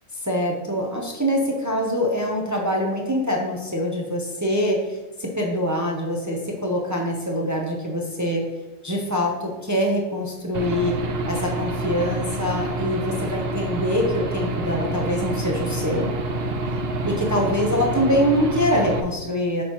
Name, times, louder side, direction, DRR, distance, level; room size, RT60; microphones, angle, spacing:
voice 1, 0.1-8.4 8.8-11.0 11.3-16.1 17.0-19.6, equal, 15° right, -1 dB, 0.7 m, -24 dB
Aircraft / Engine, 10.5-19.0, right 2 dB, 55° right, 0.8 m, -27 dB
7.7 x 6.3 x 3.1 m, 1.1 s
omnidirectional pair, 1.4 m